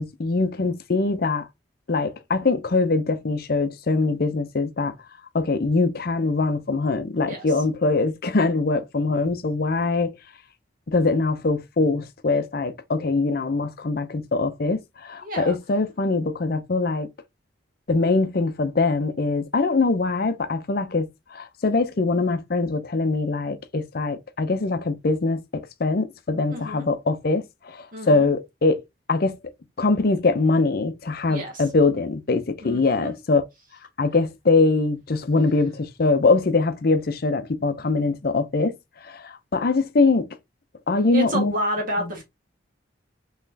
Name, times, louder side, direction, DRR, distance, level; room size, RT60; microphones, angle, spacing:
voice 1, 0.0-1.4 1.9-5.0 5.3-10.1 10.9-17.1 17.9-28.8 29.1-29.4 29.8-33.4 34.0-40.3 40.9-41.5 42.0-42.1, left 3 dB, 50° left, 0.5 m, -23 dB
voice 2, 15.2-15.5 26.5-26.8 27.9-28.3 31.3-31.6 32.6-33.1 41.1-42.2, equal, 45° right, 1.5 m, -29 dB
4.1 x 3.1 x 2.7 m
head